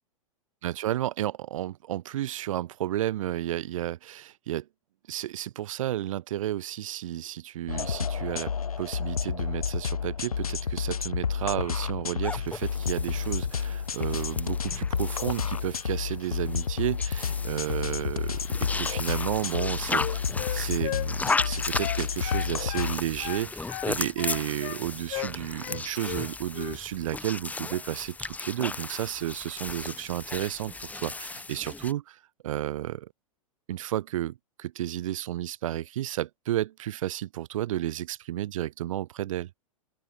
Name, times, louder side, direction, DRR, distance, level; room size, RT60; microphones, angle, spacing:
voice 1, 0.6-4.7 5.1-8.5 8.8-20.2 20.5-33.1 33.7-39.5, right 13 dB, 65° right, 2.8 m, -32 dB
sound 1, 7.7-23.0, left 6 dB, 85° left, 2.0 m, -30 dB
sound 2, 12.2-31.9, left 3 dB, 10° left, 1.2 m, -36 dB
Wind instrument woodwind instrument, 19.4-22.9 23.2-24.8 25.1-25.3 25.6-26.3 26.5-26.8, left 40 dB or more, 45° left, 1.6 m, -36 dB
open air
hypercardioid pair, 110°, 18 cm